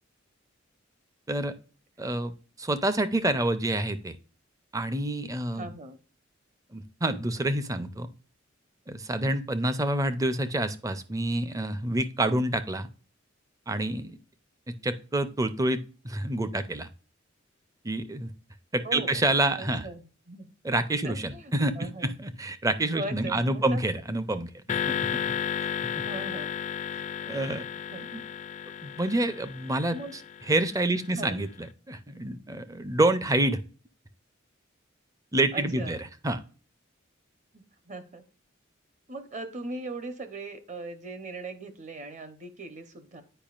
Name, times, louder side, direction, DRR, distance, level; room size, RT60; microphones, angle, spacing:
voice 1, 2.0-2.3 2.6-4.2 4.7-5.7 6.7-8.1 8.9-12.9 13.7-14.2 14.7-16.9 17.8-18.3 18.7-19.9 20.6-25.2 25.8-26.0 27.3-27.6 28.0-28.2 28.8-30.0 30.5-33.6 35.3-36.4, right 1 dB, 15° right, 12 dB, 0.5 m, -28 dB
voice 2, 5.5-6.0 18.8-19.2 19.6-20.5 21.0-22.1 22.9-23.8 26.0-26.6 27.9-28.1 29.9-30.1 31.1-31.4 35.5-36.0 37.5-38.2 39.1-43.2, right 2 dB, 35° right, 9 dB, 0.9 m, -39 dB
sound 1, 24.7-31.1, left 7 dB, 35° left, 0.3 m, -33 dB
8.9 x 5.0 x 2.4 m, 0.38 s
head